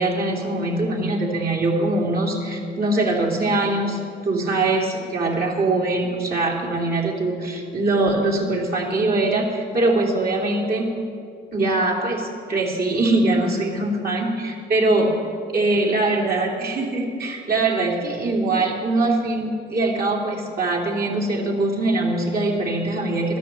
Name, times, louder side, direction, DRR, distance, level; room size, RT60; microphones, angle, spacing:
voice 1, 0.0-10.9 11.5-15.1 15.5-23.4, right 2 dB, 50° right, -2 dB, 2.9 m, -22 dB
13.5 x 10.5 x 7.5 m, 2.3 s
cardioid pair, 90°, 20 cm